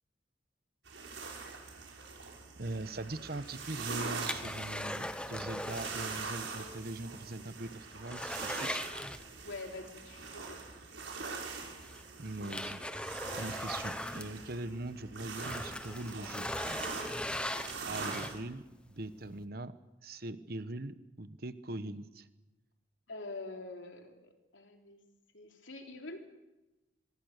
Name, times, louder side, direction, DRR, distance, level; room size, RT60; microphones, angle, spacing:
sound 1, 0.8-18.3, right 4 dB, 80° right, 6.1 m, -43 dB
voice 1, 2.6-8.8 12.2-16.5 17.9-18.6 18.9-19.7 20.0-22.3, right 2 dB, 55° right, 12 dB, 1.2 m, -41 dB
sound 2, 3.3-6.3 6.6-6.7 7.2-7.3 7.6-9.7 11.1-11.2 11.8-14.9 15.3-18.6 19.1-19.2, left 1 dB, 5° left, 1.0 m, -40 dB
voice 2, 9.4-10.6 23.1-25.0 25.3-26.2, left 2 dB, 90° left, 3 dB, 3.6 m, -45 dB
25.5 x 22.5 x 6.7 m, 1.0 s
head